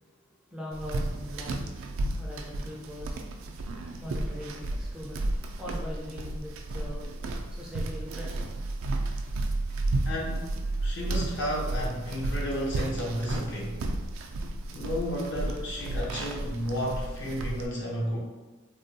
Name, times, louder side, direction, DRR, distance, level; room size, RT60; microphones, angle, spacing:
voice 1, 0.1-1.7 2.1-7.1 7.5-8.5, left 1 dB, 5° right, -4 dB, 0.4 m, -41 dB
sound 1, 0.7-17.7, right 2 dB, 80° right, 0.3 m, -33 dB
voice 2, 10.0-10.5 10.8-13.8 14.7-18.2, equal, 60° left, -4 dB, 0.9 m, -32 dB
3.4 x 2.2 x 2.6 m, 1.2 s
head